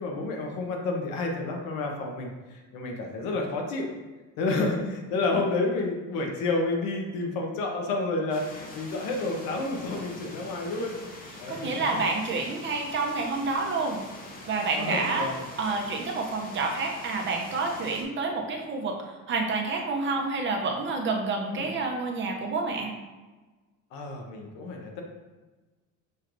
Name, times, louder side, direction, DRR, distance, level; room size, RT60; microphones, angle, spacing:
voice 1, 0.0-3.9 4.4-11.0 11.4-12.0 14.8-15.4 21.5-21.7 23.9-25.0, left 2 dB, 75° left, 2 dB, 1.0 m, -30 dB
sound 1, 8.3-18.0, left 2 dB, 25° left, 0.7 m, -44 dB
voice 2, 11.5-14.0 14.5-15.3 15.6-22.9, right 3 dB, 35° right, 1 dB, 0.6 m, -29 dB
6.5 x 3.1 x 2.6 m, 1.2 s
cardioid pair, 150°, 34 cm